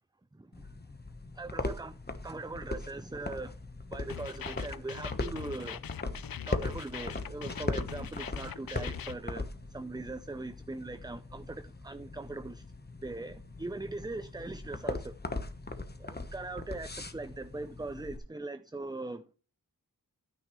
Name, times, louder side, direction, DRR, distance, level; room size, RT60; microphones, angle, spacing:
voice 1, 0.3-0.7 1.3-3.6 3.9-5.9 6.5-12.7 13.0-15.1 16.0-19.3, right 2 dB, 10° right, 0.5 m, -41 dB
sound 1, 0.5-18.2, left 2 dB, 25° left, 1.0 m, -40 dB
sound 2, 4.1-9.1, left 9 dB, 70° left, 0.6 m, -42 dB
11.0 x 9.6 x 3.1 m
wide cardioid pair, 60°, 36 cm